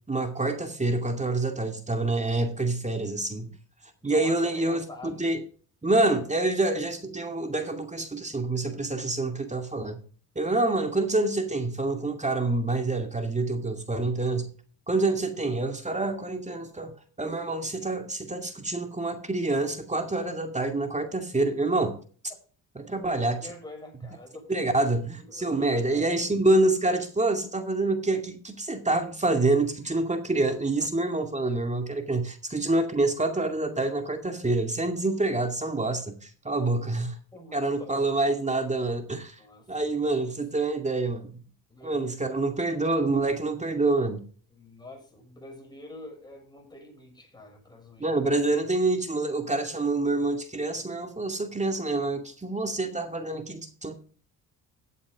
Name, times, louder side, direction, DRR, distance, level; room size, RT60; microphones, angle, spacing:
voice 1, 0.1-3.5 4.0-5.4 5.8-10.0 10.4-14.5 14.9-16.9 17.2-21.9 22.8-23.4 24.5-37.1 37.5-39.4 39.7-41.3 41.8-44.2 48.0-53.9, right 2 dB, 20° right, 2.3 m, -27 dB
voice 2, 4.0-5.2 15.0-15.2 23.2-24.8 25.1-26.2 30.8-30.9 36.7-36.8 37.3-38.0 39.4-40.4 41.7-42.0 44.5-48.2, left 2 dB, 10° left, 6.7 m, -46 dB
14.5 x 8.3 x 3.6 m
supercardioid pair, 75°, 36 cm